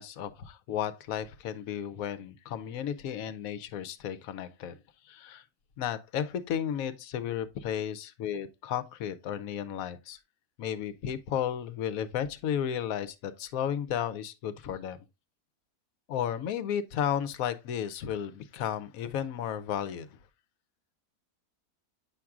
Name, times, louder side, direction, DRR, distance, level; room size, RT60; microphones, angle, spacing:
voice 1, 0.0-4.8 5.1-5.4 5.8-10.2 10.6-15.0 16.1-20.1, left 9 dB, 70° left, 1.0 m, -33 dB
8.5 x 5.9 x 2.4 m
omnidirectional pair, 1.6 m